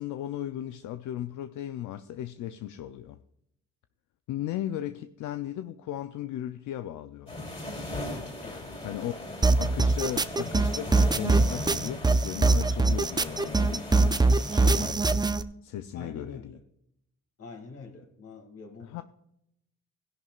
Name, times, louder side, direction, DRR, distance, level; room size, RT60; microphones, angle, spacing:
voice 1, 0.0-3.2 4.3-7.6 8.8-9.2 9.6-15.3 15.6-16.6 18.8-19.0, left 12 dB, 75° left, 0.6 m, -36 dB
sound 1, 7.3-14.9, left 1 dB, 20° left, 3.2 m, -38 dB
voice 2, 8.4-8.7 9.2-9.5 15.9-16.6 17.4-19.0, left 4 dB, 50° left, 2.5 m, -46 dB
sound 2, 9.4-15.4, right 3 dB, 15° right, 0.5 m, -23 dB
16.0 x 11.0 x 2.4 m
cardioid pair, 90°, 30 cm